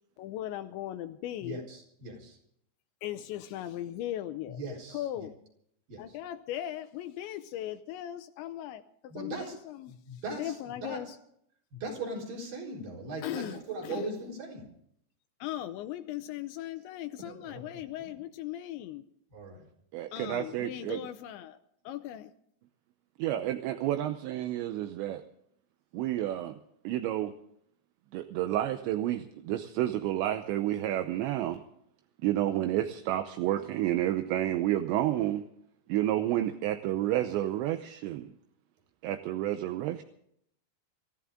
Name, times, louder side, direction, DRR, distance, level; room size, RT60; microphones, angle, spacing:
voice 1, 0.2-1.6 3.0-4.6 4.9-5.4 6.0-11.2 13.2-14.1 15.4-19.1 20.1-21.6 21.8-22.3, left 12 dB, 80° left, 9 dB, 2.9 m, -38 dB
voice 2, 1.4-2.4 4.5-5.3 5.9-6.2 9.1-9.6 9.9-10.5 10.8-11.1 11.7-14.7 17.3-18.1 19.3-19.7, right 2 dB, 45° right, -1 dB, 5.7 m, -40 dB
voice 3, 19.9-21.0 23.2-25.2 25.9-26.6 26.8-27.3 28.1-31.6 32.2-35.4 35.9-38.3 39.0-40.0, right 13 dB, 80° right, 8 dB, 2.9 m, -30 dB
24.5 x 15.0 x 3.7 m, 0.70 s
omnidirectional pair, 5.6 m